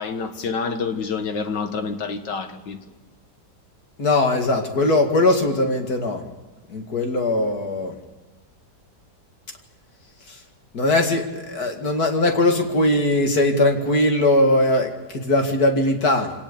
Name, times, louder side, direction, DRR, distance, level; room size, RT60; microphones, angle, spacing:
voice 1, 0.0-2.8, left 5 dB, 90° left, 2.2 m, -28 dB
voice 2, 4.0-6.2 6.7-7.9 10.3-10.4 10.7-16.3, left 2 dB, 60° left, 2.8 m, -20 dB
26.0 x 18.0 x 6.9 m
omnidirectional pair, 1.8 m